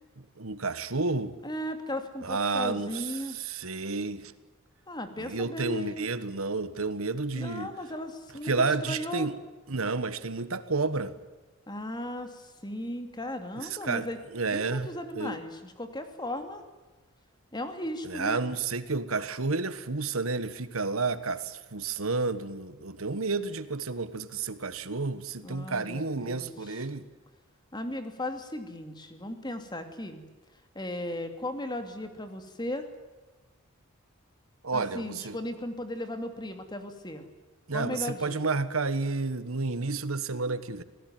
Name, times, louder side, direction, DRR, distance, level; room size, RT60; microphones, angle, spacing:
voice 1, 0.4-1.4 2.2-4.3 5.2-7.7 8.4-9.4 9.7-11.1 13.6-14.1 14.3-14.9 15.1-15.4 18.0-27.1 34.6-35.4 37.7-40.8, right 3 dB, 80° right, 13 dB, 1.4 m, -31 dB
voice 2, 1.4-3.4 4.9-6.1 7.3-8.5 8.8-9.3 11.7-14.2 14.5-16.6 17.5-18.4 25.4-26.8 27.7-30.2 30.7-32.9 34.7-37.3 37.7-38.6, left 1 dB, 20° left, 7 dB, 2.6 m, -36 dB
27.0 x 18.0 x 9.4 m, 1.2 s
head